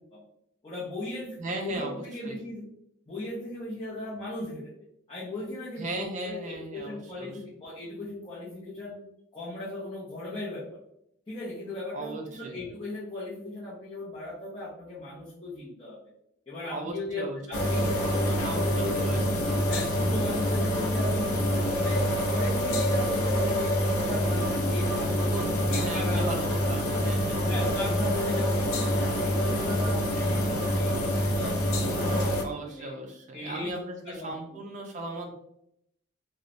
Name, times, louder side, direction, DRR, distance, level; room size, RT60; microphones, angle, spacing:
voice 1, 0.6-2.6 3.1-4.6 5.1-9.0 9.3-10.6 11.3-16.0 16.5-19.2 19.7-21.4 21.7-25.3 25.7-26.3 27.4-33.0 33.3-33.8 34.0-34.6, left 2 dB, 20° left, -9 dB, 0.5 m, -38 dB
voice 2, 1.4-2.4 5.8-7.3 11.9-12.6 16.7-17.8 18.4-19.3 25.3-27.4 32.4-35.3, right 2 dB, 35° right, 1 dB, 0.4 m, -37 dB
sound 1, 17.5-32.4, equal, 85° left, 0.5 m, -26 dB
3.0 x 2.0 x 2.4 m, 0.77 s
head